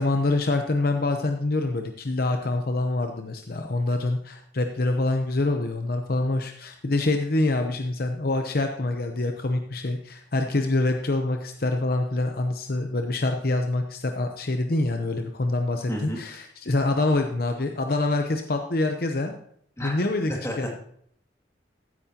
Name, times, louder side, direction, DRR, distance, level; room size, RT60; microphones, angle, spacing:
voice 1, 0.0-19.4 19.8-20.7, left 2 dB, 55° left, 5 dB, 0.8 m, -26 dB
voice 2, 15.9-16.2 19.8-19.9 20.3-20.7, equal, 15° left, -1 dB, 2.2 m, -31 dB
15.0 x 8.4 x 2.9 m, 0.66 s
head